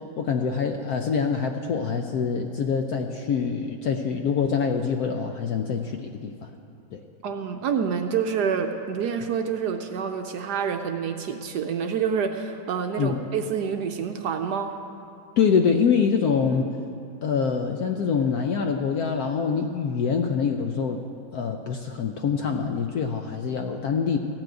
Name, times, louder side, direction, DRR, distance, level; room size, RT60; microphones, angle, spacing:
voice 1, 0.2-6.5 6.9-7.0 13.0-13.2 15.4-16.7 17.2-21.0 21.3-24.2, left 6 dB, 70° left, 4 dB, 0.9 m, -25 dB
voice 2, 7.2-14.8, right 6 dB, 70° right, 6 dB, 1.0 m, -27 dB
15.0 x 6.0 x 9.0 m, 2.5 s
omnidirectional pair, 2.1 m